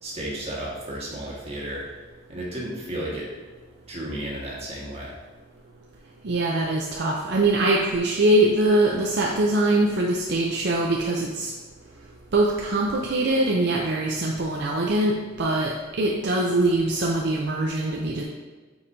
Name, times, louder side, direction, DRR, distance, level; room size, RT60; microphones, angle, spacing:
voice 1, 0.0-1.8 2.3-3.3 3.9-5.1, right 1 dB, 30° right, -5 dB, 1.7 m, -33 dB
voice 2, 6.2-11.5 12.3-18.2, right 2 dB, 60° right, -1 dB, 0.6 m, -23 dB
8.5 x 4.7 x 2.7 m, 1.4 s
head